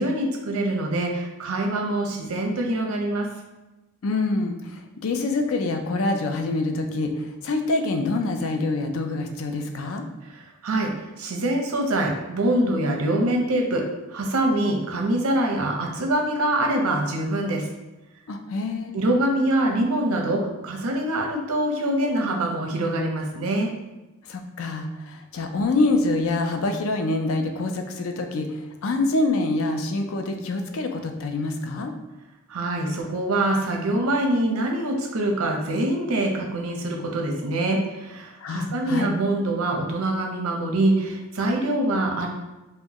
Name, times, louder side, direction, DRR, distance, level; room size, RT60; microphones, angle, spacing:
voice 1, 0.0-3.3 10.2-17.7 18.9-23.7 32.5-42.3, right 1 dB, 85° right, 1 dB, 0.7 m, -24 dB
voice 2, 4.0-10.1 18.3-18.9 24.3-31.9 38.4-39.1, left 2 dB, 70° left, 5 dB, 0.4 m, -26 dB
4.4 x 2.1 x 2.9 m, 1.1 s
head